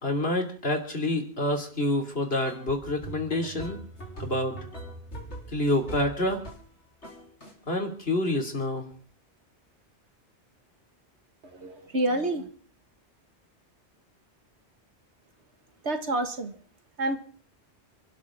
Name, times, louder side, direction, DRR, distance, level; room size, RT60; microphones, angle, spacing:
voice 1, 0.0-3.8 4.2-4.5 5.5-6.4 7.7-8.9, left 1 dB, 60° left, 4 dB, 3.2 m, -27 dB
sound 1, 2.4-6.7 7.0-7.5, right 2 dB, 85° left, 4.3 m, -42 dB
voice 2, 11.4-12.5 15.8-16.6 17.0-17.2, right 1 dB, 75° right, 6 dB, 2.1 m, -28 dB
30.0 x 12.5 x 3.7 m, 0.43 s
omnidirectional pair, 1.1 m